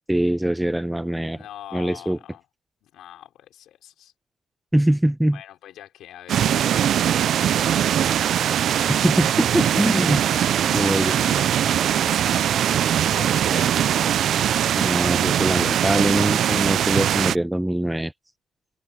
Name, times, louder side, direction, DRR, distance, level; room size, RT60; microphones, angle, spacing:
voice 1, 0.1-1.4 1.7-2.2 4.7-5.4 8.9-10.2 10.7-11.1 14.8-18.1, right 1 dB, 5° right, 0.8 m, -22 dB
voice 2, 1.3-2.4 2.8-4.1 5.3-8.9 9.7-14.3, left 12 dB, 80° left, 3.3 m, -43 dB
sound 1, 6.3-17.4, right 10 dB, 70° right, 0.4 m, -21 dB
cardioid pair, 90°, 0 cm